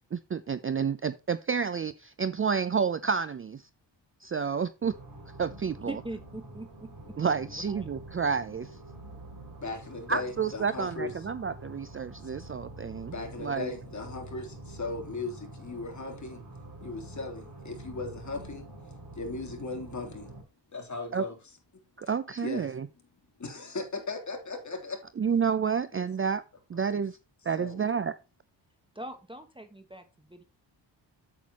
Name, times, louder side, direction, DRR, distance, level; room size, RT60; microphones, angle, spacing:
voice 1, 0.1-3.6 4.2-4.9 5.4-5.9 7.2-8.7 10.1-13.1 13.4-13.7 21.1-21.2 22.0-22.9 25.2-26.4 26.7-27.2 27.4-28.1, right 6 dB, 30° right, 0.5 m, -30 dB
sound 1, 4.8-20.4, right 1 dB, 45° right, 5.7 m, -46 dB
voice 2, 5.9-7.2 7.4-7.9 28.9-30.4, right 1 dB, 10° right, 1.2 m, -42 dB
voice 3, 9.6-11.1 12.2-12.3 13.1-16.4 16.8-18.7 19.1-20.3 20.7-21.4 22.0-22.1 22.4-22.7 23.4-25.0 25.9-26.1 26.7-27.0 27.6-27.8, left 3 dB, 40° left, 3.3 m, -37 dB
8.5 x 8.0 x 2.9 m
cardioid pair, 95°, 45 cm